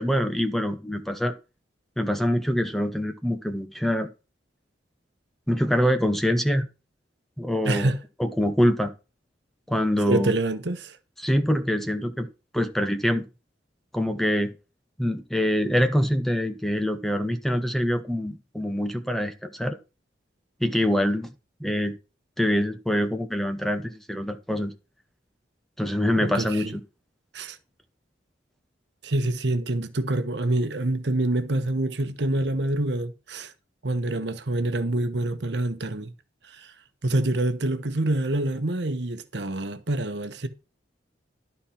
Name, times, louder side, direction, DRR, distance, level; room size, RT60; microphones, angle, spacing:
voice 1, 0.0-1.3 2.0-4.1 5.5-6.7 7.4-7.9 8.2-8.9 9.7-10.3 11.2-12.3 12.5-13.3 13.9-14.6 15.0-19.8 20.6-21.3 21.6-22.0 22.4-24.7 25.8-26.8, equal, ahead, 0.8 m, -25 dB
voice 2, 7.6-8.0 10.1-11.0 26.2-26.7 27.3-27.6 29.0-33.5 33.8-36.1 36.4-36.7 37.0-40.5, right 1 dB, 65° right, 1.0 m, -26 dB
12.0 x 4.5 x 5.7 m
head